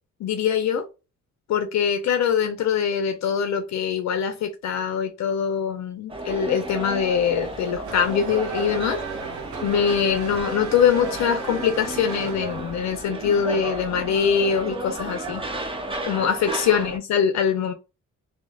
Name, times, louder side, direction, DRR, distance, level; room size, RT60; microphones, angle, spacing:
voice 1, 0.2-0.8 1.5-9.0 9.6-15.4 16.1-17.7, left 7 dB, 65° left, 0.5 m, -23 dB
sound 1, 6.1-17.0, right 2 dB, 15° right, 0.6 m, -33 dB
Race car auto racing / Accelerating revving vroom, 7.4-12.9, right 6 dB, 70° right, 0.7 m, -36 dB
3.2 x 2.0 x 2.2 m
cardioid pair, 90°, 30 cm